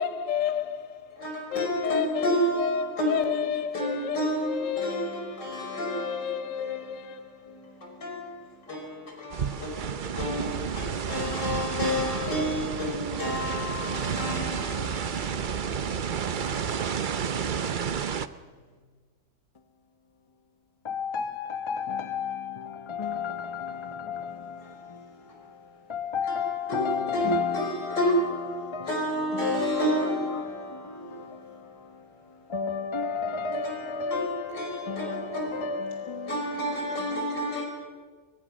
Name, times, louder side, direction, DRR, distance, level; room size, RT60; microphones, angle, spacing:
voice 1, 0.0-1.1 1.5-2.3 2.6-4.2 4.4-5.2 5.9-7.4, left 8 dB, 55° left, 1.1 m, -30 dB
voice 2, 1.2-17.0 24.6-24.8 26.3-32.3 33.6-35.7 36.3-37.7, equal, 85° left, 5.9 m, -31 dB
sound 1, 9.3-18.3, right 7 dB, 60° right, 0.5 m, -31 dB
voice 3, 20.8-28.2 28.5-37.5, left 5 dB, 20° left, 0.9 m, -33 dB
24.0 x 22.5 x 6.4 m
omnidirectional pair, 1.8 m